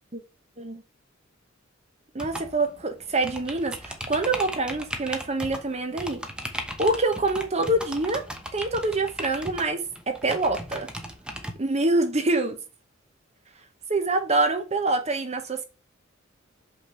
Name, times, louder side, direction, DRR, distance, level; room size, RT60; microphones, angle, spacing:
voice 1, 2.1-6.2 6.8-8.2 8.5-10.9 11.6-12.6 13.9-15.6, right 2 dB, 35° right, 1.0 m, -25 dB
sound 1, 2.2-11.5, equal, 5° right, 0.9 m, -37 dB
6.1 x 5.5 x 4.3 m
head